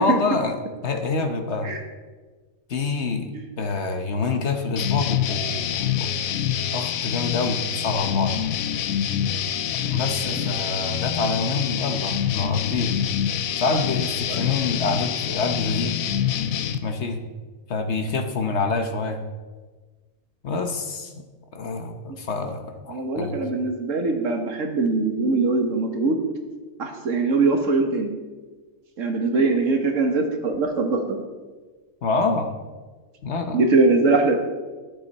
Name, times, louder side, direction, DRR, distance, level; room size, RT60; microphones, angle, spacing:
voice 1, 0.0-1.7 2.7-6.2 6.7-8.5 9.8-13.0 13.6-16.0 16.8-17.2 17.7-19.2 20.4-21.1 21.5-23.4 32.0-32.5 33.2-33.6, left 3 dB, 55° left, 6 dB, 1.2 m, -26 dB
sound 1, 4.8-16.8, left 9 dB, 75° left, 1.1 m, -26 dB
voice 2, 10.2-10.5 14.3-14.4 22.9-26.2 26.8-28.1 29.0-31.2 33.5-34.3, right 3 dB, 60° right, 5 dB, 1.7 m, -22 dB
13.0 x 10.5 x 4.2 m, 1.3 s
omnidirectional pair, 1.5 m